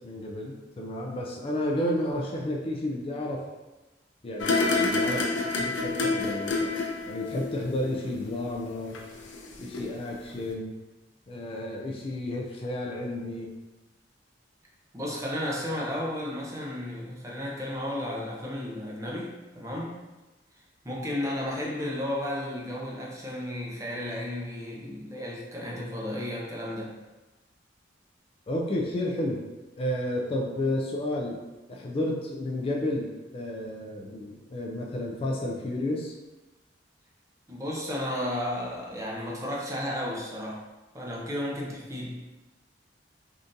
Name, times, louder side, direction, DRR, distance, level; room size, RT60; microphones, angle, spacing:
voice 1, 0.0-3.4 4.2-6.7 7.1-9.0 9.6-10.8 11.3-13.5 28.5-29.4 29.8-31.4 31.7-36.1, left 1 dB, 30° left, -1 dB, 0.3 m, -31 dB
sound 1, 4.4-9.5 9.7-9.8, left 3 dB, 85° left, 0.5 m, -29 dB
voice 2, 14.9-20.0 20.8-26.9 37.5-40.6 40.9-42.3, left 1 dB, 15° right, -3 dB, 0.6 m, -33 dB
3.7 x 2.5 x 2.6 m, 1.1 s
head